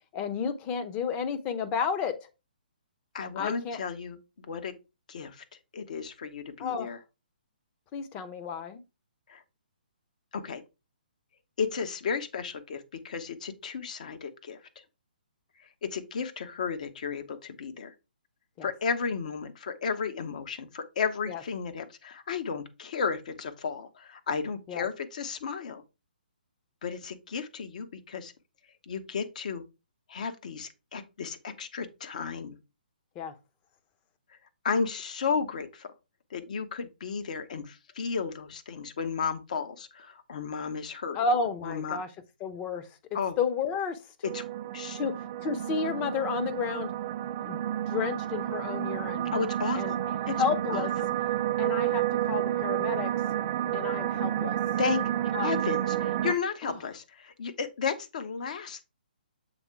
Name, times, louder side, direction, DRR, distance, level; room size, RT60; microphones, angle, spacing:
voice 1, 0.1-2.3 3.4-3.8 6.6-7.0 7.9-8.8 18.6-18.7 21.3-21.4 24.7-24.9 33.1-33.3 41.1-42.1 42.4-42.9 43.4-44.0 45.0-46.9 47.5-49.3 49.7-50.9 51.6-53.1 53.7-54.6 55.3-55.5 56.6-56.8, left 5 dB, 25° left, 0.8 m, -31 dB
voice 2, 3.1-4.7 5.1-5.4 5.7-7.0 9.3-9.4 10.3-10.6 11.6-14.6 15.8-17.9 18.6-25.8 26.8-28.3 28.9-29.6 30.1-32.6 34.6-35.9 36.3-41.2 41.6-42.0 43.1-43.4 44.3-44.5 44.7-45.0 49.3-50.0 50.3-50.4 50.7-50.8 54.8-55.0 55.4-58.8, left 5 dB, 50° left, 1.0 m, -33 dB
sound 1, 44.2-56.3, right 12 dB, 30° right, 0.4 m, -30 dB
7.1 x 3.6 x 4.6 m
figure-of-eight pair, 130°, 5 cm